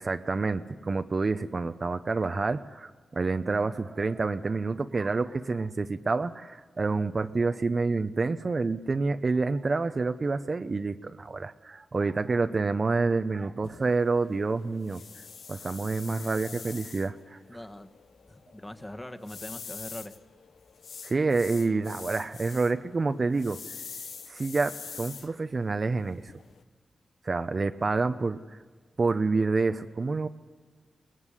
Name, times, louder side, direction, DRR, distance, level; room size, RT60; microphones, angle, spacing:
voice 1, 0.0-15.0 15.5-17.4 21.0-23.6 24.3-26.3 27.2-28.4 29.0-30.3, right 3 dB, 40° right, 10 dB, 0.8 m, -28 dB
sound 1, 13.6-26.6, left 6 dB, 75° left, 0.9 m, -45 dB
voice 2, 17.5-17.9 18.3-20.1, left 1 dB, 15° left, 8 dB, 1.6 m, -42 dB
22.0 x 19.5 x 10.0 m, 1.5 s
wide cardioid pair, 85°, 0 cm